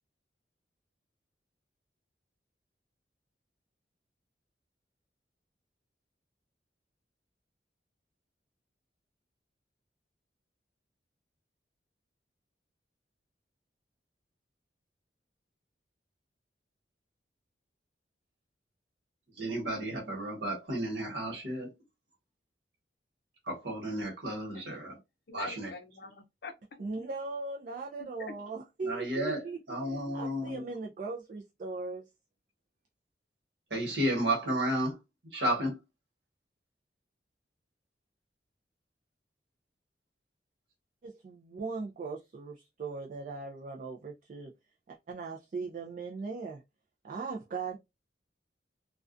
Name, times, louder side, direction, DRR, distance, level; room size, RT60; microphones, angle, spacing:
voice 1, 19.4-21.7 23.5-25.0 25.3-25.7 28.8-30.6 33.7-35.0 35.3-35.8, right 1 dB, 75° right, 1.2 m, -32 dB
voice 2, 25.3-26.8 28.0-28.4, left 5 dB, 60° left, 0.5 m, -45 dB
voice 3, 26.8-29.6 30.1-32.1 41.0-44.5 44.9-46.6 47.0-47.8, right 4 dB, 45° right, 0.3 m, -39 dB
2.3 x 2.2 x 2.5 m
head